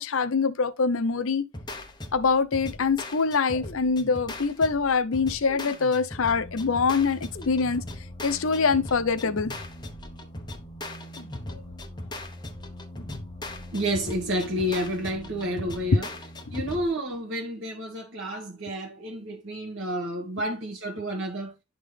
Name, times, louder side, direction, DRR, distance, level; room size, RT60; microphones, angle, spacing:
voice 1, 0.0-1.5 2.1-7.8 8.2-9.5 11.5-11.6 15.9-16.0, left 4 dB, 65° left, 0.6 m, -24 dB
sound 1, 1.5-16.9, left 1 dB, 20° left, 0.8 m, -39 dB
sound 2, 3.5-4.7 5.4-6.6 7.3-8.5 9.2-10.3 11.2-12.1 13.0-13.9, left 2 dB, 35° left, 1.6 m, -46 dB
voice 2, 13.7-16.1 16.5-21.5, equal, 60° right, 1.4 m, -30 dB
11.0 x 3.7 x 3.3 m
head